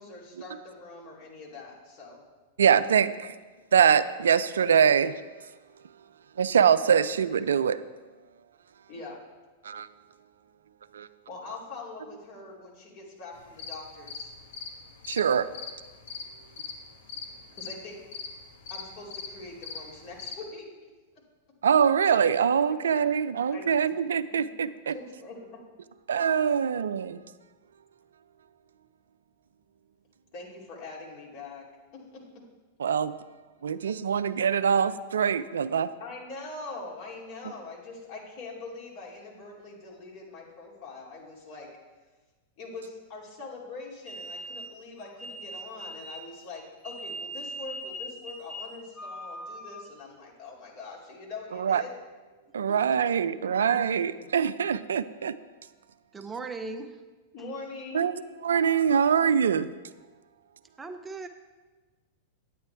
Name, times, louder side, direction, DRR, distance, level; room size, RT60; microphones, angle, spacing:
voice 1, 0.0-2.2 8.9-9.2 11.3-14.3 17.5-18.0 18.7-20.7 23.5-23.7 24.3-24.5 24.9-25.6 30.3-31.6 31.9-32.2 36.0-41.7 42.6-51.9 52.7-52.8 53.4-53.7 54.1-54.3 57.3-58.1, left 3 dB, 50° left, 2.7 m, -43 dB
voice 2, 2.6-3.3 3.7-5.1 6.4-7.8 9.6-9.9 10.9-11.1 15.1-15.5 21.6-24.9 26.1-27.2 32.8-33.1 33.6-35.9 51.5-51.8 52.5-55.3 57.9-58.1 58.4-59.7, right 7 dB, 80° right, 0.3 m, -23 dB
sound 1, 13.3-20.4, left 5 dB, 70° left, 1.1 m, -41 dB
sound 2, 44.1-50.0, right 1 dB, 10° left, 1.1 m, -40 dB
voice 3, 56.1-57.0 60.8-61.3, right 3 dB, 15° right, 0.5 m, -37 dB
9.5 x 9.1 x 3.4 m
hypercardioid pair, 105°, 0 cm